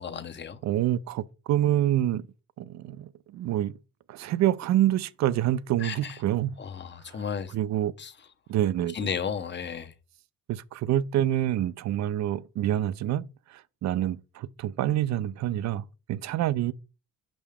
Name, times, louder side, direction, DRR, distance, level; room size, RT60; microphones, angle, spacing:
voice 1, 0.0-0.6 5.8-6.2 6.6-7.5 8.0-8.1 8.9-9.9, left 7 dB, 35° left, 0.8 m, -34 dB
voice 2, 0.6-2.2 2.6-3.8 4.1-6.5 7.5-7.9 8.5-9.0 10.5-16.7, right 12 dB, 65° right, 0.5 m, -27 dB
5.5 x 5.1 x 3.5 m
cardioid pair, 90°, 30 cm